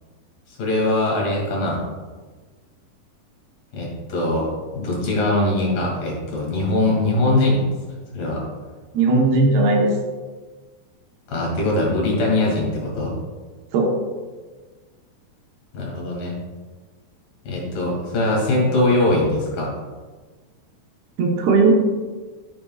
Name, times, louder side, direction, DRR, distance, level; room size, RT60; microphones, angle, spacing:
voice 1, 0.5-1.8 3.7-7.6 8.1-8.4 11.3-13.1 15.7-16.3 17.5-19.7, left 2 dB, 60° left, -3 dB, 3.9 m, -21 dB
voice 2, 8.9-9.9 13.7-14.0 21.2-21.7, right 3 dB, 80° right, 0 dB, 3.0 m, -17 dB
10.5 x 8.6 x 2.4 m, 1.4 s
omnidirectional pair, 4.6 m